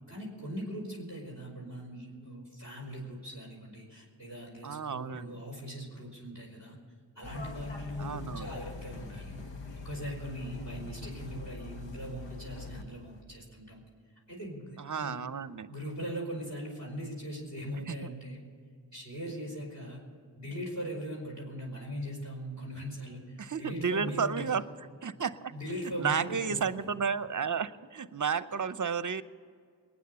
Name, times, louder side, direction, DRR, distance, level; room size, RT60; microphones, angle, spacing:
voice 1, 0.1-6.8 7.2-9.3 9.8-13.8 14.3-15.2 15.7-18.4 18.9-20.0 20.4-24.5 25.5-26.9, equal, 40° left, -4 dB, 5.2 m, -40 dB
voice 2, 4.6-5.4 8.0-8.6 14.8-15.7 17.8-18.1 23.4-24.6 25.0-25.5 26.0-29.2, right 6 dB, 40° right, 15 dB, 0.7 m, -32 dB
sound 1, 7.2-12.8 13.1-13.2, left 3 dB, 70° left, 1.5 m, -43 dB
21.0 x 9.4 x 6.7 m, 2.2 s
cardioid pair, 40°, 45 cm